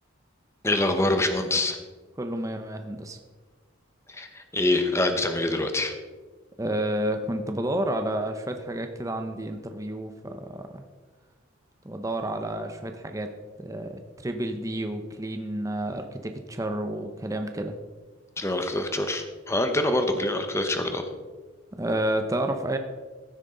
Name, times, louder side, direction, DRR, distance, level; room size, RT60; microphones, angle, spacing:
voice 1, 0.6-1.8 4.1-5.9 18.4-21.1, left 1 dB, 15° left, 6 dB, 0.9 m, -25 dB
voice 2, 2.2-3.2 6.6-10.8 11.8-17.7 21.7-22.8, right 1 dB, 15° right, 6 dB, 0.6 m, -30 dB
15.5 x 9.2 x 3.8 m, 1.4 s
head